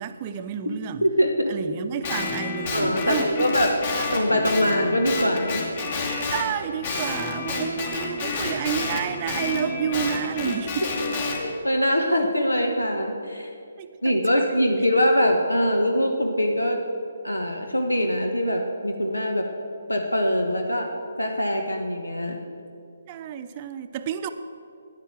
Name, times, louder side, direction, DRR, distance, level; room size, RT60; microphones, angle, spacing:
voice 1, 0.0-1.0 1.5-3.5 4.0-4.1 4.3-4.4 6.3-10.9 13.8-14.2 14.5-14.6 23.1-24.3, right 8 dB, 30° right, 9 dB, 0.7 m, -30 dB
voice 2, 1.0-1.5 2.7-3.7 4.1-5.7 10.4-10.5 10.8-11.1 11.3-13.5 14.0-16.8 17.2-19.5 19.9-20.9 21.2-22.4, equal, 90° left, 3 dB, 1.3 m, -23 dB
Guitar, 2.0-6.5 6.8-11.4, left 3 dB, 45° left, 2.6 m, -29 dB
11.0 x 9.7 x 7.5 m, 2.5 s
figure-of-eight pair, 140°, 0 cm